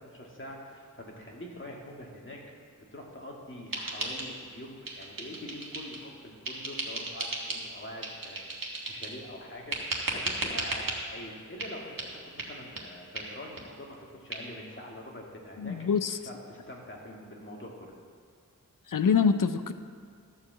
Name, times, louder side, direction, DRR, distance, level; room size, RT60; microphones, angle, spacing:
voice 1, 0.0-2.4 2.9-15.8 16.3-17.9, left 1 dB, 35° left, -2 dB, 2.0 m, -44 dB
sound 1, 3.7-4.6 4.8-6.1 6.4-7.7 8.0-9.2 9.7-11.0 11.6-11.7 12.0-12.1 12.4-12.5 12.8-12.9 13.1-13.3 13.6-13.7 13.9-14.0 14.3-14.4, right 2 dB, 85° right, 1.5 m, -35 dB
voice 2, 15.6-16.2 18.9-19.7, left 6 dB, 70° left, 11 dB, 0.6 m, -25 dB
12.5 x 4.8 x 7.5 m, 2.1 s
wide cardioid pair, 70°, 33 cm